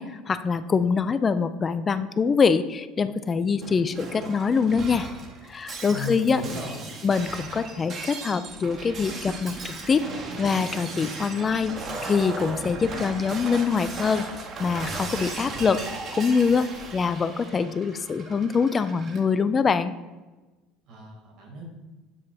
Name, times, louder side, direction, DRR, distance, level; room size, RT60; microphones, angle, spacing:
voice 1, 0.0-5.1 5.5-6.4 7.0-10.1 10.4-14.3 14.6-19.9, left 5 dB, 30° left, 12 dB, 0.3 m, -24 dB
Shatter, 3.6-19.2, right 3 dB, 40° right, 0.9 m, -37 dB
voice 2, 5.9-6.9 20.9-21.7, left 2 dB, 60° right, 0 dB, 2.1 m, -36 dB
7.7 x 2.8 x 4.7 m, 1.2 s
supercardioid pair, 110°, 0 cm